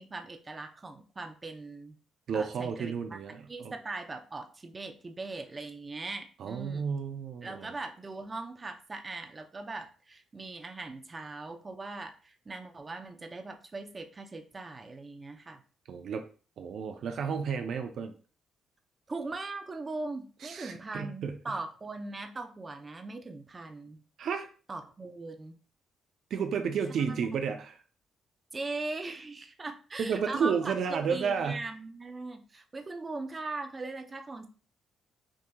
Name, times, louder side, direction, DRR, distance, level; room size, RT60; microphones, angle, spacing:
voice 1, 0.0-2.0 2.3-3.2 3.5-6.9 7.4-15.6 19.1-24.0 24.7-25.6 28.5-34.5, right 3 dB, 30° right, 5 dB, 0.6 m, -40 dB
voice 2, 2.3-3.7 6.4-7.7 15.9-16.2 16.6-18.1 20.4-21.4 24.2-24.5 26.3-27.8 30.0-31.6, right 6 dB, 65° right, 6 dB, 0.5 m, -32 dB
6.1 x 2.8 x 2.3 m, 0.38 s
cardioid pair, 90°, 0 cm